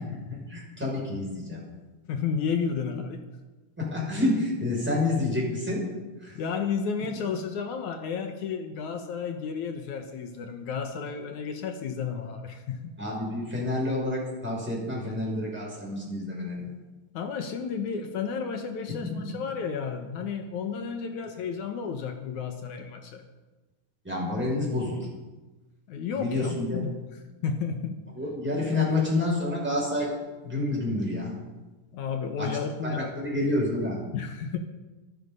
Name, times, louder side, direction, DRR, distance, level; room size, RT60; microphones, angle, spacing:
voice 1, 0.0-1.6 3.8-5.9 6.2-6.4 13.0-16.7 18.9-19.4 24.0-25.1 26.1-26.8 28.1-30.2 30.4-31.4 32.4-34.0, left 2 dB, 5° right, -4 dB, 6.5 m, -29 dB
voice 2, 2.1-3.2 6.3-12.9 17.1-23.2 25.9-26.9 27.4-28.0 31.9-33.1 34.1-34.6, left 6 dB, 65° left, 6 dB, 2.4 m, -32 dB
24.5 x 10.5 x 5.5 m, 1.2 s
omnidirectional pair, 4.0 m